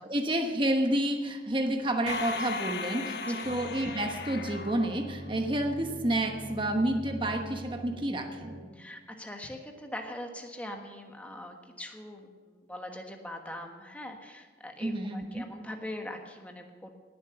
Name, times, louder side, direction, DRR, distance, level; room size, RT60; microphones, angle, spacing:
voice 1, 0.0-8.6 14.8-15.5, right 1 dB, 25° right, 4 dB, 1.1 m, -30 dB
sound 1, 2.1-5.7, left 4 dB, 70° left, 1.1 m, -37 dB
sound 2, 3.4-8.6, equal, 75° right, 3.5 m, -44 dB
voice 2, 8.7-16.9, left 1 dB, 10° left, 3 dB, 1.3 m, -42 dB
19.0 x 7.6 x 6.8 m, 1.4 s
head